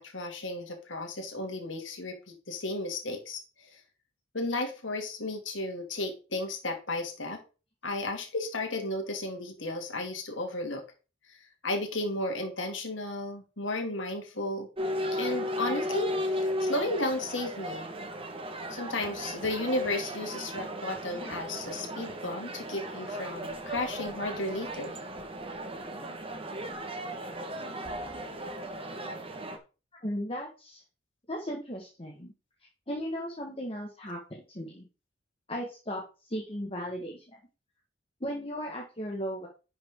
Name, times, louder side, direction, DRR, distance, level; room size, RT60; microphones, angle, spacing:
voice 1, 0.0-3.8 4.3-7.4 7.8-10.8 11.3-11.4 11.6-14.7 15.1-17.9 18.7-24.9, left 2 dB, 80° left, 3 dB, 2.6 m, -34 dB
sound 1, 14.8-29.6, equal, 30° right, 1.5 m, -36 dB
voice 2, 30.0-30.8 31.3-32.3 32.9-34.8 35.5-37.2 38.2-39.5, equal, 30° left, -1 dB, 1.6 m, -36 dB
11.0 x 6.2 x 3.7 m, 0.33 s
head